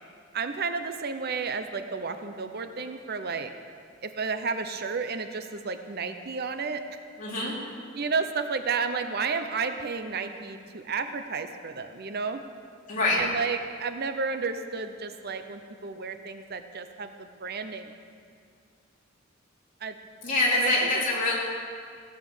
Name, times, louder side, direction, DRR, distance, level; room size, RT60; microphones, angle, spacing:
voice 1, 0.3-3.5 4.0-7.0 7.9-12.4 13.2-17.9 19.8-20.0 20.5-21.1, right 5 dB, 55° right, 8 dB, 0.7 m, -32 dB
voice 2, 7.2-7.6 12.9-13.2 20.2-21.4, left 2 dB, 45° left, -5 dB, 3.6 m, -25 dB
16.5 x 8.7 x 7.1 m, 2.1 s
head